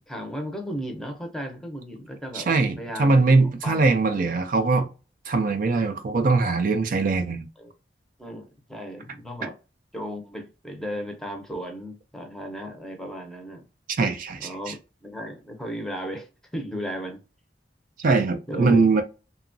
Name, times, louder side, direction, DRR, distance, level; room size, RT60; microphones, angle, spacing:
voice 1, 0.0-2.5 2.8-3.2 3.6-3.9 7.6-7.7 8.2-9.5 9.9-13.6 14.4-17.2 18.5-18.8, equal, 5° left, 0.6 m, -35 dB
voice 2, 2.3-4.9 5.3-7.5 14.0-14.5 18.0-19.0, right 3 dB, 50° right, 0.4 m, -21 dB
2.9 x 2.2 x 2.5 m
head